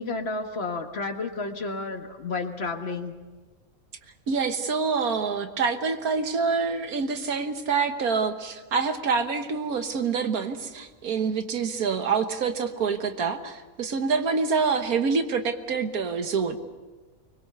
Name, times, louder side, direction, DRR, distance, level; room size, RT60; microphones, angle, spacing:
voice 1, 0.0-3.1, left 3 dB, 45° left, 5 dB, 1.8 m, -31 dB
voice 2, 4.3-16.6, right 5 dB, 85° right, 7 dB, 1.8 m, -26 dB
25.0 x 21.5 x 6.8 m, 1.3 s
omnidirectional pair, 1.5 m